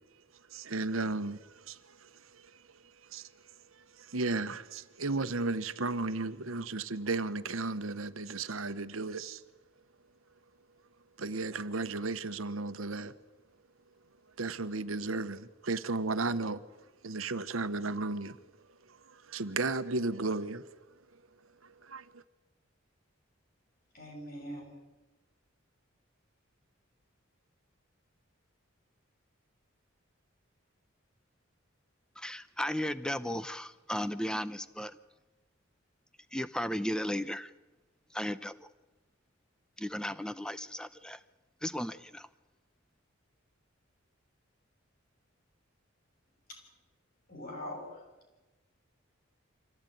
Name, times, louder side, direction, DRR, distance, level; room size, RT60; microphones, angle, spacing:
voice 1, 0.5-2.6 3.1-3.3 3.7-9.4 11.2-13.1 14.4-16.6 17.0-18.4 18.9-20.6 21.6-22.2, right 3 dB, 85° right, 1.1 m, -34 dB
voice 2, 23.9-24.8 46.5-46.6 47.3-48.0, left 1 dB, 45° left, 7.0 m, -42 dB
voice 3, 32.2-35.0 36.3-37.5 38.1-38.7 39.8-41.2 41.6-42.3, equal, 5° left, 0.7 m, -35 dB
25.0 x 16.5 x 9.3 m
head